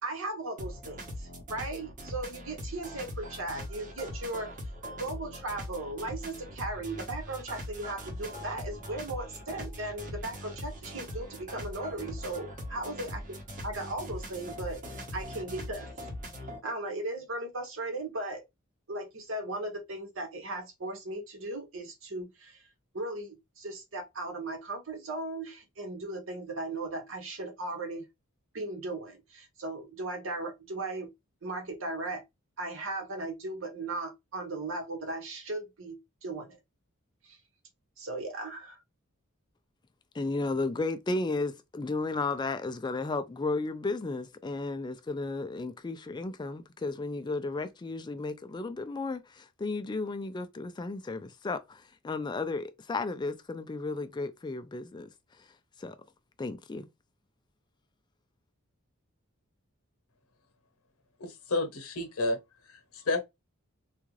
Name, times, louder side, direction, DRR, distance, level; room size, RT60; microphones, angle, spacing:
voice 1, 0.0-4.6 5.0-13.4 13.6-15.9 16.6-18.5 18.9-22.7 22.9-28.1 28.5-31.1 31.4-32.2 32.6-36.6 37.2-37.4 38.0-38.8, right 2 dB, 65° right, 1.1 m, -37 dB
sound 1, 0.6-16.6, equal, 35° right, 0.9 m, -41 dB
voice 2, 40.1-55.1 55.8-56.0 56.4-56.9, left 3 dB, 20° left, 0.3 m, -34 dB
voice 3, 61.2-62.4 62.7-63.2, left 2 dB, 85° left, 0.9 m, -31 dB
3.6 x 2.4 x 3.1 m
head